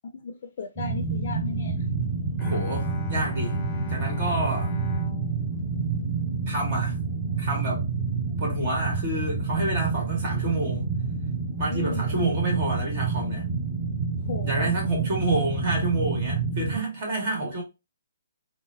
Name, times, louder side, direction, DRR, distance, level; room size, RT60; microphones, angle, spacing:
voice 1, 0.1-1.8 11.7-12.2 14.2-14.7, left 4 dB, 50° left, 0.5 m, -35 dB
sound 1, 0.8-16.8, right 4 dB, 10° right, 1.5 m, -28 dB
Bowed string instrument, 2.4-6.5, left 2 dB, 10° left, 0.7 m, -37 dB
voice 2, 2.4-4.8 6.5-7.0 7.4-7.9 8.4-10.9 11.6-13.5 14.4-17.6, right 2 dB, 45° right, 1.7 m, -29 dB
3.8 x 2.2 x 2.7 m
figure-of-eight pair, 135°, 0 cm